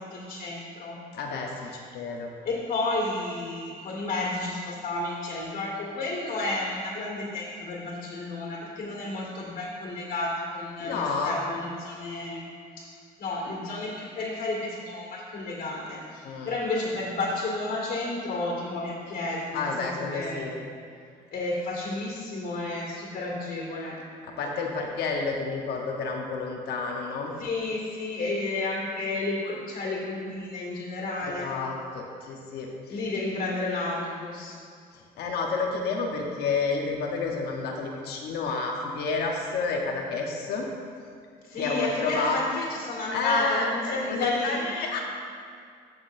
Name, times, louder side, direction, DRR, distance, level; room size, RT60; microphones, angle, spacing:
voice 1, 0.0-1.0 2.4-12.4 12.8-12.9 13.2-20.5 21.3-24.0 27.4-31.5 32.9-34.6 41.4-44.6, left 2 dB, 55° left, -4 dB, 2.2 m, -31 dB
voice 2, 1.1-2.3 10.8-11.4 16.2-16.5 19.5-20.6 24.4-27.3 31.4-33.0 34.9-40.7 41.5-42.4 43.1-45.0, left 4 dB, 75° left, 0 dB, 1.1 m, -30 dB
15.0 x 6.3 x 2.7 m, 2.2 s
cardioid pair, 110°, 17 cm